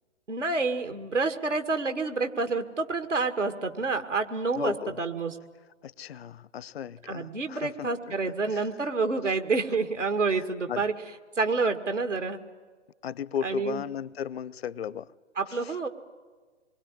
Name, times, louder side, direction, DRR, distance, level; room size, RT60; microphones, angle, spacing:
voice 1, 0.3-5.3 7.1-10.9 11.4-12.4 13.4-13.8 15.4-15.9, right 4 dB, 90° right, 7 dB, 2.0 m, -28 dB
voice 2, 4.5-5.0 5.8-8.7 10.3-10.8 13.0-15.1 15.4-15.8, left 9 dB, 60° left, 19 dB, 0.7 m, -36 dB
26.0 x 22.5 x 9.9 m, 1.4 s
figure-of-eight pair, 120°, 36 cm